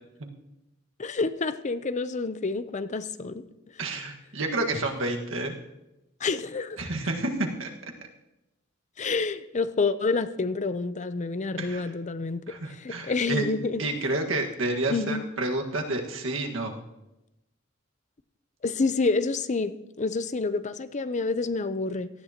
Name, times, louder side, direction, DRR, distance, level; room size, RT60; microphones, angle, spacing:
voice 1, 1.0-3.4 6.2-6.8 9.0-13.8 14.9-15.2 18.6-19.7 20.0-22.1, left 3 dB, 35° left, 12 dB, 0.6 m, -28 dB
voice 2, 3.8-5.5 6.8-7.7 11.6-11.9 12.5-13.4 13.8-16.8, right 2 dB, 80° right, 2 dB, 1.7 m, -29 dB
18.0 x 13.5 x 2.9 m, 0.93 s
head